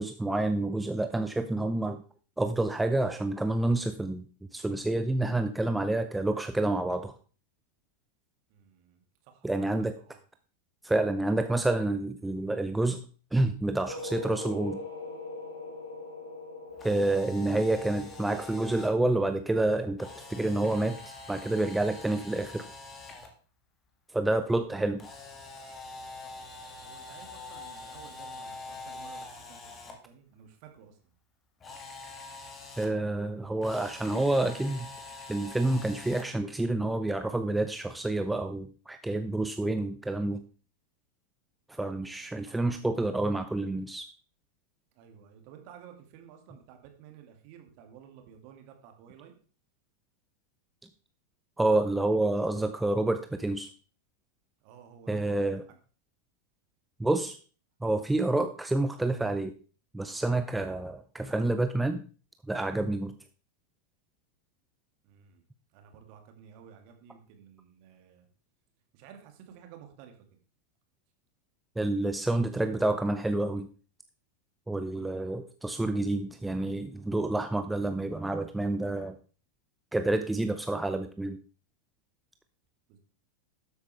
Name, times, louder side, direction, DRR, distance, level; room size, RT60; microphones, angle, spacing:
voice 1, 0.0-2.0 2.4-4.3 4.5-7.1 9.4-9.9 10.8-13.0 13.3-14.8 16.8-22.7 24.1-25.1 32.8-34.9 35.3-40.4 41.7-44.1 51.6-53.7 55.1-55.6 57.0-57.4 57.8-59.6 59.9-62.0 62.5-63.1 71.8-73.7 74.7-79.2 79.9-81.4, right 2 dB, 5° right, 8 dB, 0.5 m, -28 dB
voice 2, 8.5-9.6 10.0-10.2 26.2-31.0 41.9-42.6 44.9-49.3 54.6-55.2 55.7-55.8 65.0-65.4 65.7-68.3 68.9-70.4 74.9-75.2 82.9-83.0, right 8 dB, 45° right, 5 dB, 2.2 m, -53 dB
sound 1, 13.9-20.9, left 3 dB, 75° left, 2.7 m, -43 dB
Camera, 16.7-18.9 20.0-23.3 25.0-29.9 31.6-32.9 33.6-36.3, left 3 dB, 20° left, 2.1 m, -45 dB
12.5 x 8.0 x 3.4 m, 0.38 s
figure-of-eight pair, 90°, 0 cm